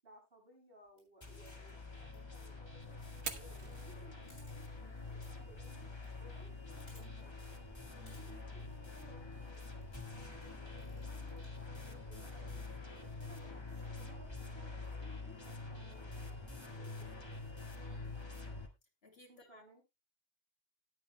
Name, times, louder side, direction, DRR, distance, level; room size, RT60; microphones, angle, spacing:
voice 1, 0.0-3.0 3.3-5.9 6.2-7.5 7.9-12.6 13.0-17.3 19.3-19.8, right 1 dB, 55° right, 6.8 m, -61 dB
sound 1, 0.9-1.0 1.4-1.7 2.1-2.2 2.8-3.3 3.6-3.7 3.9-4.0 4.3-4.5 5.2-5.3 5.6-6.1 6.4-6.5 6.8-7.0 7.4-7.5 7.9-8.2 8.6-8.9 9.5-10.5 10.8-11.6 12.2-12.3 12.9-13.0 13.4-13.8, left 1 dB, 85° left, 7.7 m, -65 dB
sound 2, 1.2-18.7, left 3 dB, 25° left, 1.9 m, -46 dB
Fire, 3.1-11.1, right 5 dB, 75° right, 1.6 m, -54 dB
voice 2, 17.8-18.5 19.0-19.6, left 3 dB, 65° left, 2.8 m, -61 dB
19.0 x 8.7 x 2.2 m
omnidirectional pair, 1.1 m